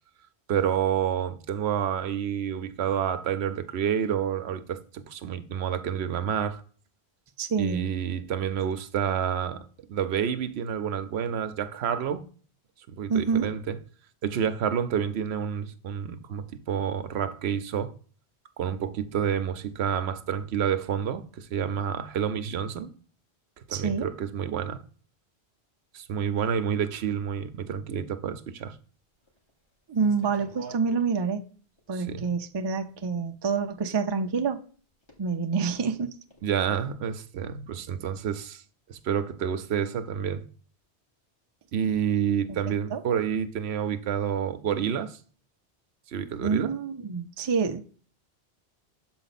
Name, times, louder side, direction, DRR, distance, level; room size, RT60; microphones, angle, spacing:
voice 1, 0.5-6.6 7.6-12.2 12.9-13.8 14.2-17.9 18.6-22.9 23.7-24.8 25.9-28.8 31.9-32.2 36.4-38.6 38.9-40.4 41.7-45.2 46.1-46.7, right 8 dB, 75° right, 0.9 m, -29 dB
voice 2, 7.4-7.9 13.1-13.5 23.7-24.1 29.9-31.5 31.9-34.6 35.2-36.1 42.5-42.6 42.9-43.0 46.4-47.8, right 5 dB, 35° right, 0.4 m, -27 dB
sound 1, 28.6-28.7 29.3-29.5 30.0-31.1 31.8-31.9 32.9-33.0 35.0-35.3 35.6-35.8 36.3-36.4, right 1 dB, 25° left, 1.7 m, -47 dB
6.9 x 4.2 x 4.1 m
omnidirectional pair, 1.1 m